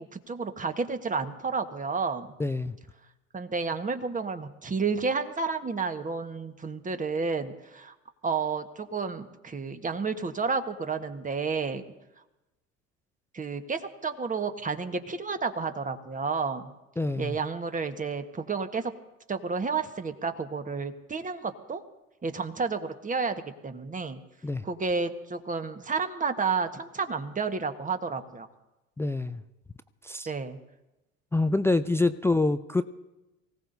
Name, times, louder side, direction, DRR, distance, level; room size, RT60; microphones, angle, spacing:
voice 1, 0.0-2.3 3.3-7.9 8.2-11.8 13.3-16.7 17.2-18.9 19.3-21.8 22.2-24.2 24.6-28.5 30.2-30.6, right 4 dB, 20° right, 1.4 m, -31 dB
voice 2, 2.4-2.7 17.0-17.4 24.4-24.6 29.0-29.4 30.0-30.3 31.3-32.8, left 2 dB, 5° left, 0.4 m, -26 dB
24.0 x 17.0 x 2.7 m
hypercardioid pair, 70°, 39 cm